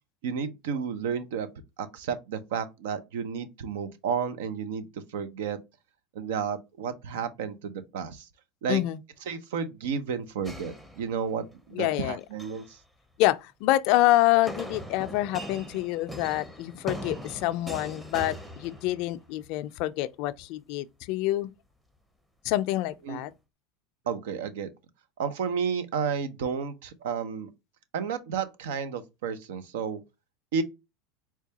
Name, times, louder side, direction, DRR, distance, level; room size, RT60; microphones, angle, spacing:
voice 1, 0.2-1.5 1.8-5.6 6.1-8.3 8.6-8.8 9.3-12.8 23.1-23.2 24.1-24.7 25.2-27.5 27.9-30.0 30.5-30.6, right 6 dB, 80° right, 0.6 m, -32 dB
voice 2, 8.7-9.0 11.7-12.2 13.2-21.5 22.4-23.3, left 16 dB, 65° left, 0.3 m, -26 dB
sound 1, 10.4-11.5 12.2-12.7 14.5-19.3, equal, 5° right, 0.7 m, -40 dB
4.5 x 2.3 x 2.8 m
hypercardioid pair, 100°, 0 cm